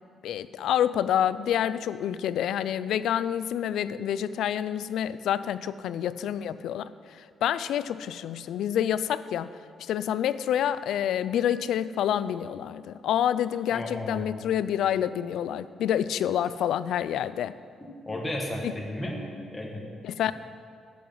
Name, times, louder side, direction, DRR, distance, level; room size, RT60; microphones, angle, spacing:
voice 1, 0.2-9.5 9.8-17.5 18.6-18.7 20.0-20.3, left 10 dB, 75° left, 15 dB, 0.3 m, -28 dB
voice 2, 13.7-14.4 17.8-19.2 19.5-19.9, left 1 dB, 10° left, -1 dB, 1.2 m, -34 dB
12.5 x 7.7 x 5.5 m, 2.3 s
cardioid pair, 170°, 0 cm